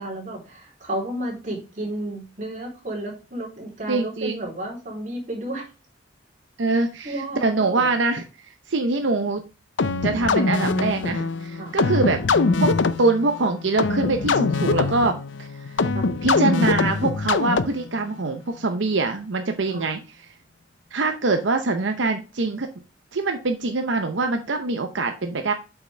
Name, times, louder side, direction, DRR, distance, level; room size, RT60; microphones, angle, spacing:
voice 1, 0.0-5.7 6.7-7.9 11.6-11.7 15.9-16.1 19.7-19.9, right 1 dB, 40° right, -2 dB, 3.4 m, -32 dB
voice 2, 3.9-4.4 6.6-8.2 8.7-9.4 10.0-12.2 12.6-12.7 13.0-15.2 16.2-20.0 20.9-22.7 23.1-25.5, right 3 dB, 80° right, 6 dB, 0.7 m, -23 dB
sound 1, 9.8-18.0, left 3 dB, 80° left, 0.6 m, -23 dB
8.0 x 5.8 x 3.3 m, 0.32 s
head